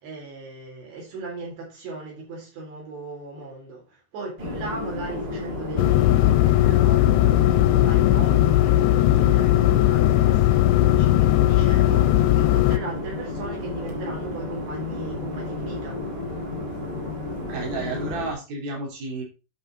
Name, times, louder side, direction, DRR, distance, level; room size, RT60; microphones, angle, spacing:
voice 1, 0.0-7.3 7.8-16.0, right 2 dB, 80° right, 5.7 m, -38 dB
sound 1, 4.4-18.3, left 2 dB, 30° right, 2.3 m, -32 dB
sound 2, 5.8-12.8, left 14 dB, 90° left, 2.7 m, -18 dB
voice 2, 17.4-19.2, right 3 dB, 65° right, 4.5 m, -31 dB
9.7 x 6.1 x 3.8 m
omnidirectional pair, 4.8 m